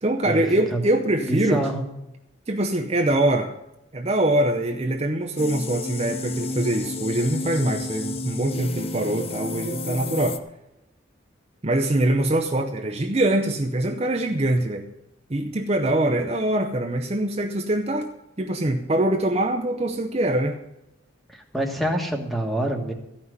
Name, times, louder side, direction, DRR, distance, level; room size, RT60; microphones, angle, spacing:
voice 1, 0.0-1.7 2.5-3.5 3.9-10.4 11.6-14.9 15.3-18.1 18.4-20.6, right 1 dB, 30° right, 2 dB, 0.7 m, -23 dB
voice 2, 1.2-1.8 21.3-22.9, right 1 dB, ahead, 3 dB, 1.4 m, -26 dB
sound 1, 5.4-10.4, left 2 dB, 30° left, 0.6 m, -31 dB
14.0 x 5.8 x 9.5 m, 0.90 s
head